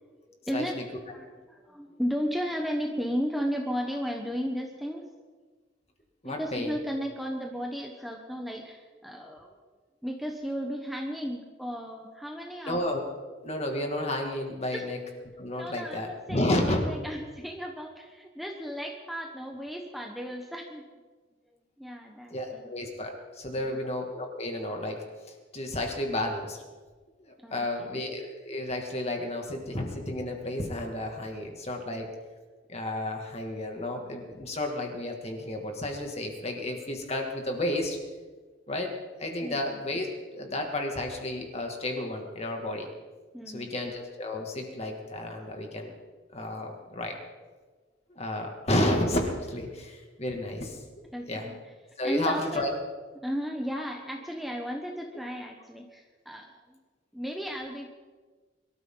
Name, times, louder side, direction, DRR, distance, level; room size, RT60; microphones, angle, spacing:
voice 1, 0.0-5.0 6.2-9.5 10.0-12.8 14.7-14.8 15.5-20.9 21.8-22.7 23.5-23.8 27.4-28.0 39.4-39.6 43.3-43.7 51.1-51.7 52.0-52.7 53.2-56.8 57.1-57.9, equal, ahead, 1 dB, 1.1 m, -35 dB
voice 2, 6.2-6.8 12.6-13.0 13.4-15.0 15.4-16.8 22.3-25.0 25.5-26.6 27.2-32.1 32.7-38.0 38.7-40.1 40.3-42.9 43.5-45.9 46.3-47.2 48.1-50.8 51.3-51.5 52.0-52.7, left 1 dB, 35° left, 2 dB, 2.4 m, -32 dB
23.5 x 13.0 x 4.0 m, 1.4 s
head